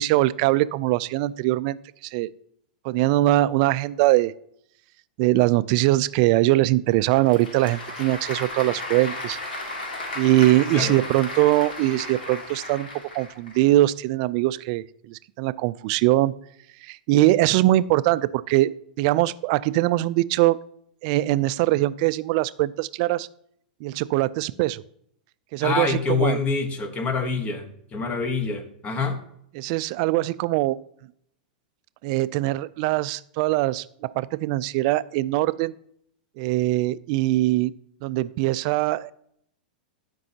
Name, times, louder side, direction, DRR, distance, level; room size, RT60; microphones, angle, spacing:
voice 1, 0.0-1.8 2.0-2.3 2.8-4.3 5.2-9.4 10.2-12.9 13.1-16.3 16.8-18.7 19.0-20.6 21.0-23.3 23.8-24.8 25.5-26.4 29.6-30.8 32.0-35.7 36.4-37.7 38.0-39.1, right 17 dB, 50° right, 18 dB, 0.3 m, -22 dB
Applause / Crowd, 6.9-13.6, left 2 dB, 90° left, 2.0 m, -35 dB
voice 2, 25.6-29.2, left 4 dB, 25° left, 8 dB, 1.1 m, -26 dB
13.0 x 5.3 x 2.8 m, 0.70 s
hypercardioid pair, 125°, 5 cm